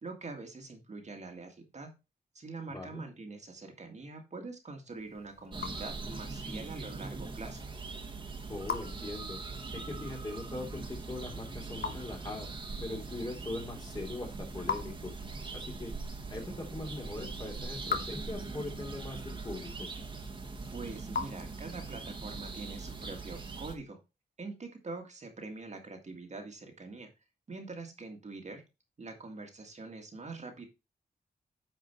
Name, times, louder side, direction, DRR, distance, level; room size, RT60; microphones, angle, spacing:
voice 1, 0.0-1.9 2.3-7.7 20.7-24.0 24.4-27.1 27.5-28.6 29.0-30.6, right 3 dB, 45° right, 3 dB, 1.9 m, -44 dB
voice 2, 2.7-3.0 8.5-9.4 9.7-15.1 15.5-15.9 16.3-19.9, left 2 dB, 25° left, 1 dB, 2.9 m, -41 dB
Raindrop / Drip, 4.9-22.1, left 5 dB, 75° left, 1.3 m, -44 dB
sound 1, 5.5-23.8, right 4 dB, 30° right, 1.7 m, -41 dB
9.2 x 4.9 x 4.4 m, 0.26 s
wide cardioid pair, 120°, 16 cm